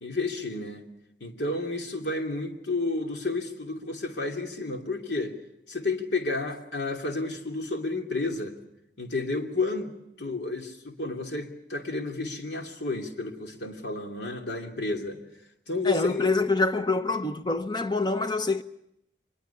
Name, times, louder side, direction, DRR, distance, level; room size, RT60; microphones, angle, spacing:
voice 1, 0.0-0.9 1.2-5.3 5.7-8.6 9.0-9.9 10.2-15.2 15.7-16.2, left 3 dB, 75° left, 2.8 m, -31 dB
voice 2, 15.8-18.6, left 3 dB, 25° left, 0.9 m, -26 dB
24.0 x 21.5 x 7.1 m
head